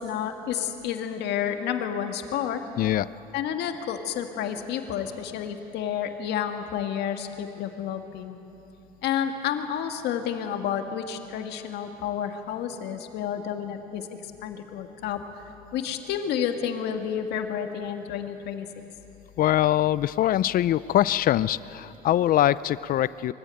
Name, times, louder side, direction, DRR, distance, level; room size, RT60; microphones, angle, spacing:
voice 1, 0.0-2.6 3.3-8.4 9.0-15.4 15.7-18.7, left 9 dB, 80° left, 6 dB, 1.7 m, -30 dB
voice 2, 19.4-23.3, left 13 dB, 60° left, 18 dB, 0.5 m, -23 dB
23.5 x 15.0 x 8.9 m, 3.0 s
cardioid pair, 110°, 17 cm